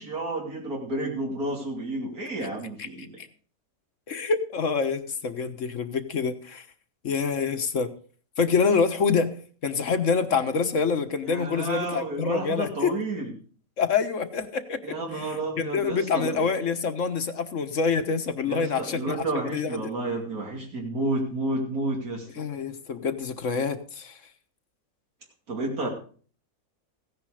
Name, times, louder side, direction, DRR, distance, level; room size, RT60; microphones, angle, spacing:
voice 1, 0.0-3.2 11.2-13.3 14.8-16.5 18.4-22.3 25.5-25.9, right 2 dB, 85° right, -1 dB, 3.2 m, -31 dB
voice 2, 2.8-3.3 4.1-6.6 7.0-7.9 8.4-9.4 9.6-12.9 13.8-14.9 15.6-19.2 19.5-19.9 22.4-24.2, left 5 dB, 60° left, 9 dB, 1.5 m, -26 dB
16.0 x 10.0 x 4.9 m, 0.43 s
omnidirectional pair, 1.5 m